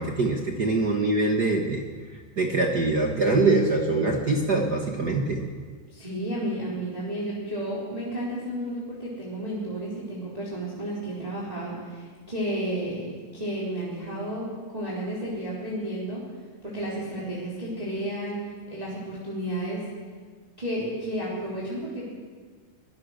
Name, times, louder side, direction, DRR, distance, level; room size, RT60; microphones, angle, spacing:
voice 1, 0.0-1.8 2.1-5.4, right 3 dB, 45° right, 2 dB, 1.4 m, -24 dB
voice 2, 5.9-13.0 13.3-16.2 16.6-18.4 18.7-19.9 20.6-22.1, right 1 dB, 10° right, -6 dB, 3.9 m, -32 dB
24.0 x 17.0 x 6.6 m, 1.5 s
omnidirectional pair, 3.8 m